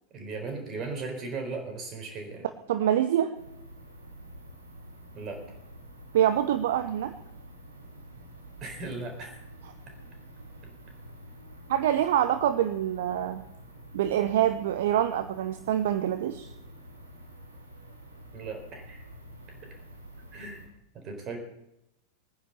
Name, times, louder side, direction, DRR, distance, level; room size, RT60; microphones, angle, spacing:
voice 1, 0.1-2.4 5.1-5.4 8.6-9.5 18.3-19.1 20.3-20.6 21.0-21.4, right 3 dB, 30° right, 3 dB, 4.3 m, -37 dB
voice 2, 2.7-3.3 6.1-7.1 11.7-13.5 13.9-16.5, right 11 dB, 55° right, 11 dB, 0.7 m, -25 dB
sound 1, 3.3-20.7, right 1 dB, 80° right, 2.9 m, -48 dB
20.0 x 9.8 x 6.8 m, 0.86 s
figure-of-eight pair, 90°, 0 cm